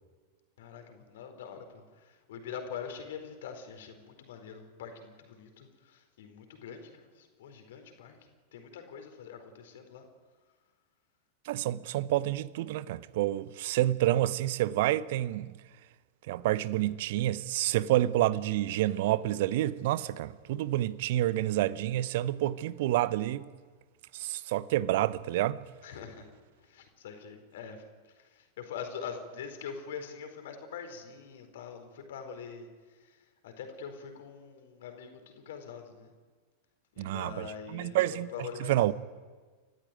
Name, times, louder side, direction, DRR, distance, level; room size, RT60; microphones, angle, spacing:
voice 1, 0.6-8.2 8.5-10.0 25.8-26.3 26.6-32.7 33.0-36.1 36.9-38.9, left 6 dB, 55° left, 4.5 m, -44 dB
voice 2, 11.5-15.6 16.3-23.5 24.1-25.6 37.0-37.5 37.7-38.3 38.6-38.9, right 14 dB, 50° right, 0.9 m, -28 dB
30.0 x 15.0 x 9.4 m
figure-of-eight pair, 90°, 0 cm